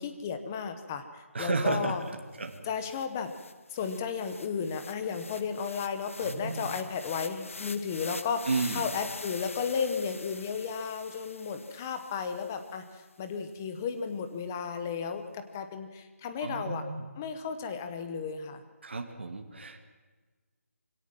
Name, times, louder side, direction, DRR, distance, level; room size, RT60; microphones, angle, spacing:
voice 1, 0.0-2.0 2.6-3.3 3.7-8.5 8.7-16.8 17.2-18.6, left 6 dB, 10° left, 8 dB, 0.8 m, -34 dB
voice 2, 1.3-2.7 6.2-6.7 8.5-8.9 16.4-17.0 18.8-19.8, right 3 dB, 45° right, 5 dB, 2.6 m, -32 dB
sound 1, 2.1-2.2 2.4-12.8, left 3 dB, 55° left, 1.1 m, -45 dB
24.0 x 17.5 x 7.5 m, 1.3 s
figure-of-eight pair, 175°, 8 cm